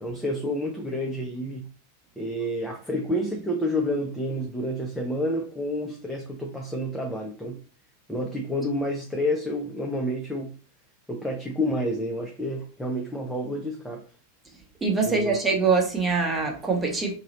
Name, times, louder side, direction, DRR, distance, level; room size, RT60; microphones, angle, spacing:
voice 1, 0.0-1.7 2.2-7.6 8.1-10.6 11.1-14.1 15.0-15.4, equal, 5° left, 0.6 m, -29 dB
voice 2, 14.8-17.1, right 4 dB, 15° right, 1.0 m, -23 dB
2.8 x 2.7 x 4.0 m
figure-of-eight pair, 90°, 0 cm